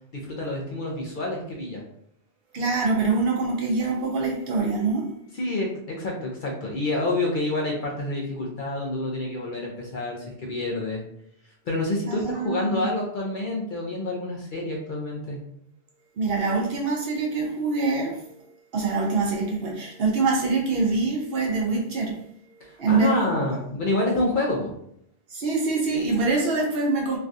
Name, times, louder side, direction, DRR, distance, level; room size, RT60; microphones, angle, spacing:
voice 1, 0.2-1.8 5.3-11.0 11.7-15.4 22.6-24.7, left 2 dB, 55° left, -2 dB, 0.6 m, -28 dB
voice 2, 2.5-5.1 12.1-12.9 16.2-18.2 18.7-22.2 22.8-23.4 25.3-27.2, right 3 dB, 60° right, -1 dB, 0.8 m, -25 dB
3.2 x 2.3 x 2.6 m, 0.71 s
omnidirectional pair, 1.2 m